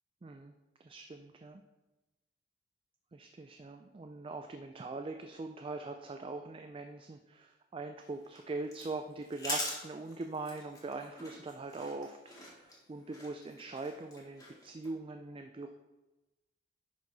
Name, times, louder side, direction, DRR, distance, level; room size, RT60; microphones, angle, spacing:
voice 1, 0.2-0.5 0.8-1.6 3.1-15.7, right 3 dB, 30° right, 5 dB, 0.3 m, -42 dB
sound 1, 8.0-14.9, left 1 dB, 20° left, 2.0 m, -44 dB
10.5 x 4.5 x 4.0 m, 1.1 s
head